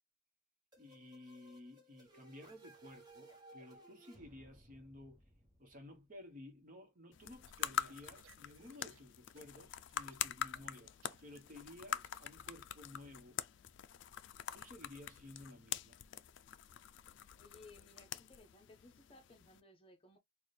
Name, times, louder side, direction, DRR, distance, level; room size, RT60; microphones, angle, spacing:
sound 1, 0.7-6.4, right 1 dB, 20° right, 1.1 m, -61 dB
voice 1, 0.8-5.2 5.6-13.4 14.5-16.0, left 1 dB, 40° right, 1.0 m, -55 dB
sound 2, 7.1-19.6, left 9 dB, 60° left, 0.3 m, -45 dB
sound 3, 7.4-9.0 9.3-9.6 9.9-12.5, right 6 dB, 75° right, 0.5 m, -65 dB
voice 2, 17.4-20.2, left 2 dB, 25° left, 0.8 m, -60 dB
4.1 x 2.3 x 3.2 m
head